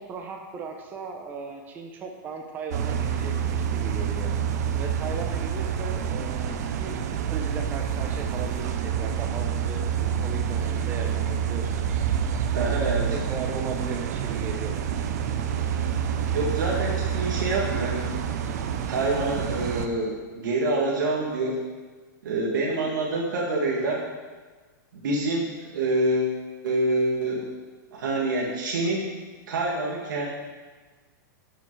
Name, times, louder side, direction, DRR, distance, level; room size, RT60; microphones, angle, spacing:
voice 1, 0.0-4.3 4.7-11.8 12.5-12.8 13.1-14.9, right 4 dB, 15° right, 3 dB, 0.9 m, -37 dB
sound 1, 2.7-19.9, right 8 dB, 55° right, 0.7 m, -28 dB
voice 2, 12.5-13.1 16.3-18.1 18.9-21.6 22.2-24.0 24.9-26.4 26.6-27.5 27.9-29.1 29.5-30.3, right 2 dB, 80° right, -3 dB, 1.9 m, -26 dB
12.0 x 5.5 x 4.7 m, 1.4 s
supercardioid pair, 165°, 11 cm